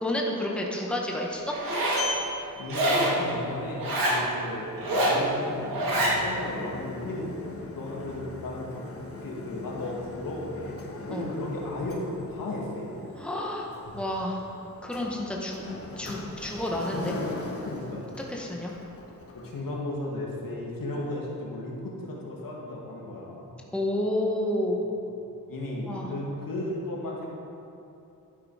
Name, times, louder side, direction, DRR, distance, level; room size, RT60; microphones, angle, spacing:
voice 1, 0.0-1.5 11.1-11.3 13.2-13.7 13.9-14.5 14.8-15.6 16.0-17.2 18.3-18.7 23.7-24.8 25.9-26.1, left 1 dB, 5° left, -1 dB, 1.3 m, -30 dB
Sliding door, 1.3-19.6, left 3 dB, 45° left, 1.5 m, -40 dB
Zipper (clothing), 1.5-2.1 2.7-3.2 3.8-4.2 4.8-5.2 5.7-6.2, right 1 dB, 85° right, 2.2 m, -25 dB
voice 2, 2.6-7.3 7.7-8.8 9.2-10.8 11.0-13.1 17.4-18.0 19.3-23.5 25.5-27.3, left 1 dB, 80° left, -3 dB, 2.3 m, -35 dB
11.5 x 9.7 x 4.9 m, 2.8 s
wide cardioid pair, 130°, 34 cm